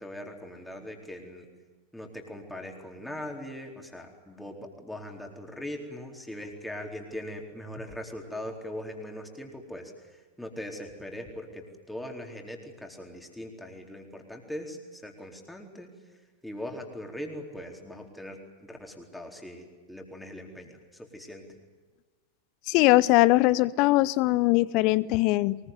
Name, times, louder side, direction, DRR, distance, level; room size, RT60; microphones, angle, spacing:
voice 1, 0.0-1.5 1.9-21.6, left 1 dB, 5° left, 2 dB, 4.2 m, -41 dB
voice 2, 22.7-25.6, left 19 dB, 40° left, 20 dB, 0.7 m, -21 dB
23.5 x 21.5 x 9.6 m, 1.3 s
figure-of-eight pair, 90°, 0 cm